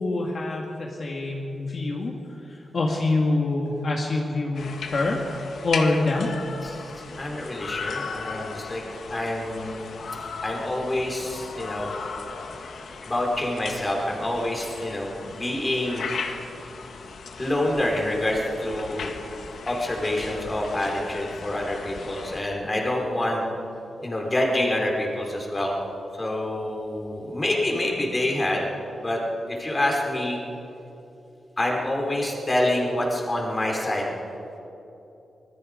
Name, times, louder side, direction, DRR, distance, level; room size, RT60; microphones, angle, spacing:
voice 1, 0.0-5.3 5.6-6.3, left 2 dB, 50° left, -1 dB, 2.1 m, -26 dB
sound 1, 4.5-22.4, left 5 dB, 70° left, 1.8 m, -37 dB
voice 2, 7.2-8.8 9.1-9.9 10.4-11.9 13.0-16.1 17.4-19.1 19.7-23.4 24.0-25.8 26.1-28.6 29.0-29.2 29.5-30.4 31.6-34.1, left 1 dB, 20° left, -1 dB, 4.3 m, -27 dB
25.0 x 21.0 x 5.2 m, 2.9 s
wide cardioid pair, 135°, 0 cm